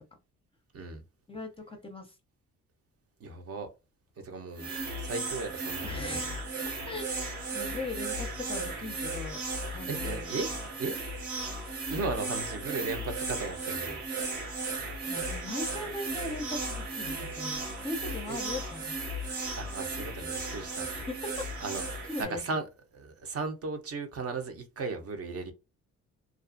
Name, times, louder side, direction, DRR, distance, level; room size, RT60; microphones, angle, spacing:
voice 1, 1.3-2.1 5.8-7.2 7.5-9.4 9.7-10.4 15.1-19.0 20.9-21.7 22.1-22.4, left 2 dB, 20° left, 0.6 m, -39 dB
voice 2, 3.2-3.7 4.2-6.0 9.9-10.5 10.8-11.0 11.9-14.0 18.3-18.4 19.6-20.9 21.6-22.7 22.9-25.5, right 3 dB, 50° right, 0.8 m, -36 dB
sound 1, 4.6-22.2, right 2 dB, 80° right, 1.2 m, -35 dB
2.5 x 2.4 x 2.5 m
cardioid pair, 90°, 30 cm